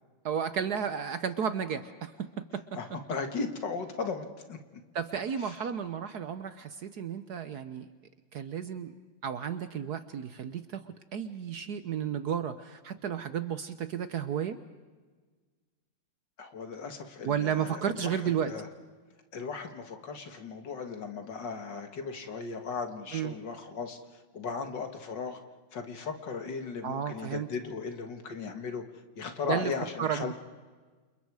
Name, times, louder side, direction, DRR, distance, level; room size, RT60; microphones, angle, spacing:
voice 1, 0.2-2.6 4.9-7.9 8.3-8.9 9.2-14.6 17.2-18.5 23.1-23.3 26.8-27.5 29.5-29.7 30.0-30.3, right 8 dB, 60° right, 11 dB, 1.2 m, -33 dB
voice 2, 2.8-4.6 5.4-5.6 16.4-18.7 19.3-24.0 24.3-25.4 25.7-28.8 29.2-30.3, left 5 dB, 60° left, 6 dB, 2.3 m, -37 dB
29.0 x 28.0 x 4.8 m, 1.4 s
omnidirectional pair, 2.3 m